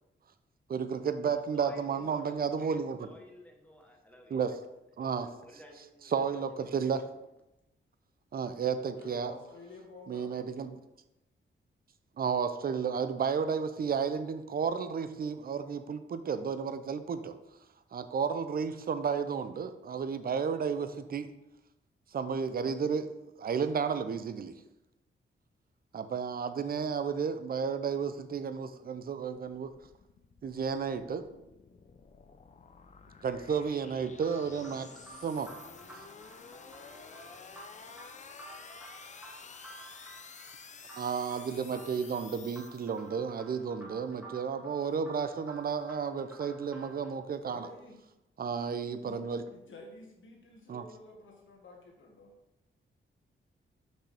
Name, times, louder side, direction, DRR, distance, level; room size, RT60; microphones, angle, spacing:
voice 1, 0.7-3.1 4.3-4.5 5.0-5.3 6.0-7.1 8.3-9.3 10.1-10.7 12.2-17.3 17.9-21.3 22.1-24.5 25.9-29.7 30.4-31.2 33.2-34.9 35.2-35.5 41.0-47.7 48.4-49.4 50.7-50.8, right 6 dB, 45° right, 10 dB, 0.5 m, -32 dB
voice 2, 1.3-4.4 5.4-6.7, equal, 5° left, 1 dB, 1.1 m, -52 dB
voice 3, 9.0-10.5 47.4-48.0 49.0-49.2 49.5-52.4, left 3 dB, 70° left, 0 dB, 1.5 m, -51 dB
sound 1, 28.8-43.3, left 5 dB, 35° left, 0.4 m, -51 dB
sound 2, 34.2-47.1, right 3 dB, 10° right, 1.4 m, -52 dB
6.1 x 5.4 x 3.4 m, 0.92 s
wide cardioid pair, 115°, 21 cm